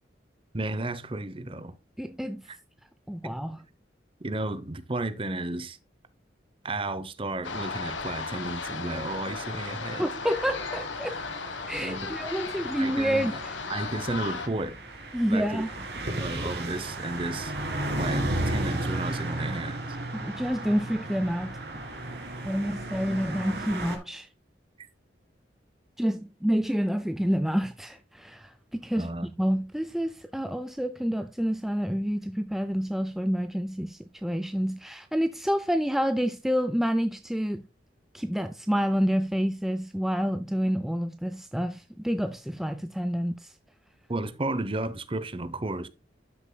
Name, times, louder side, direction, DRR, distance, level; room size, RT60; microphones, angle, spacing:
voice 1, 0.5-1.8 2.5-2.6 4.2-5.8 6.6-10.1 11.8-12.2 12.8-13.3 13.7-14.8 15.3-15.6 15.9-17.5 18.0-19.8 24.8-24.9 29.0-29.4 44.1-45.9, right 2 dB, 30° right, 0.8 m, -33 dB
voice 2, 2.0-2.4 3.1-3.6 10.0-11.2 11.7-13.4 15.1-15.7 20.1-21.6 22.4-24.3 26.0-29.1 29.4-37.6 38.1-43.5, equal, ahead, 0.4 m, -28 dB
sound 1, 7.4-14.5, left 4 dB, 85° left, 1.3 m, -35 dB
sound 2, 10.2-24.0, right 1 dB, 60° right, 2.0 m, -34 dB
12.5 x 6.6 x 2.2 m
head